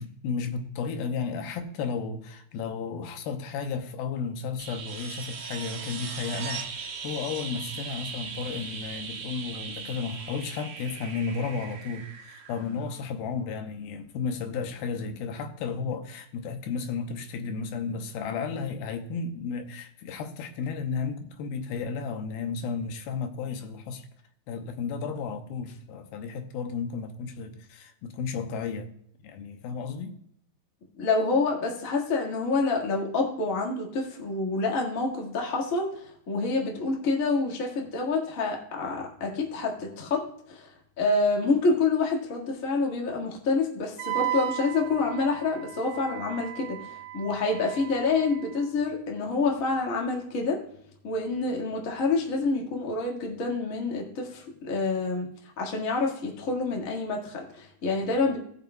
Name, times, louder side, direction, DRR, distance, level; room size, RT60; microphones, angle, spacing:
voice 1, 0.0-24.1 24.5-28.9 29.2-30.1, left 5 dB, 80° left, 2.6 m, -33 dB
sound 1, 4.6-13.3 15.6-15.7, right 5 dB, 60° right, 2.3 m, -39 dB
voice 2, 31.0-50.6 51.0-55.3 55.6-58.4, left 3 dB, 45° left, 1.0 m, -27 dB
Wind instrument woodwind instrument, 44.0-48.6, right 15 dB, 90° right, 2.5 m, -35 dB
18.5 x 6.9 x 2.3 m
omnidirectional pair, 4.5 m